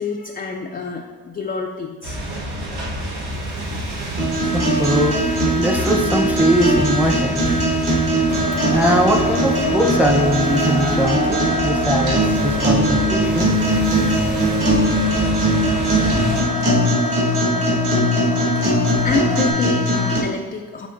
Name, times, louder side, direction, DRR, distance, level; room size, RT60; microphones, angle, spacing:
voice 1, 0.0-2.2 19.0-20.9, left 4 dB, 25° left, 2 dB, 0.3 m, -27 dB
sound 1, 2.0-16.4, equal, 80° right, 1.3 m, -28 dB
sound 2, 4.2-20.2, right 1 dB, 50° right, 1.6 m, -20 dB
voice 2, 4.5-7.4 8.7-13.5, equal, 5° right, 0 dB, 0.7 m, -21 dB
Wind, 8.3-19.5, left 2 dB, 80° left, 0.8 m, -29 dB
10.5 x 3.6 x 2.6 m, 1.5 s
cardioid pair, 100°, 39 cm